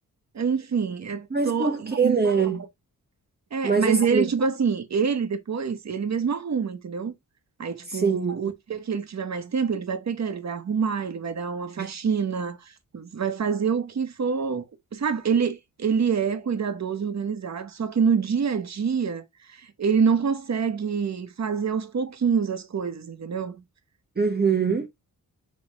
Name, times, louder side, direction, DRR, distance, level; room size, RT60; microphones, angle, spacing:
voice 1, 0.3-2.2 3.5-7.1 7.6-14.6 14.9-19.2 19.5-23.6, right 6 dB, 50° right, 1.4 m, -26 dB
voice 2, 1.3-2.6 3.6-4.3 7.9-8.4 11.8-11.9 24.2-24.9, right 5 dB, 30° right, 1.1 m, -23 dB
5.9 x 5.4 x 3.5 m
wide cardioid pair, 130°, 34 cm